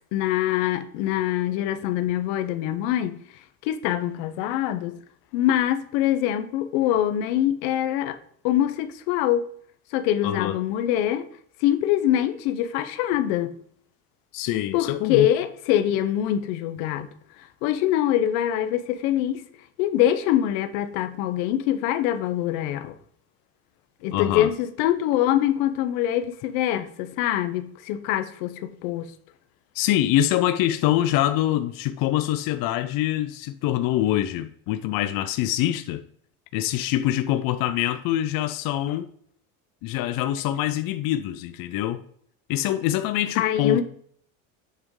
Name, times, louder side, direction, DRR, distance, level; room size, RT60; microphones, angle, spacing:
voice 1, 0.1-3.2 3.6-5.0 5.3-8.2 8.4-9.4 9.9-11.3 11.6-13.5 14.7-17.1 17.6-19.4 19.8-22.9 24.0-29.1 43.3-43.8, left 12 dB, 80° left, 0.9 m, -24 dB
voice 2, 10.2-10.6 14.3-15.3 24.1-24.5 29.8-36.0 36.5-39.1 39.8-42.0 42.5-43.8, left 13 dB, 55° left, 0.6 m, -24 dB
7.9 x 3.6 x 4.8 m
cardioid pair, 135°, 42 cm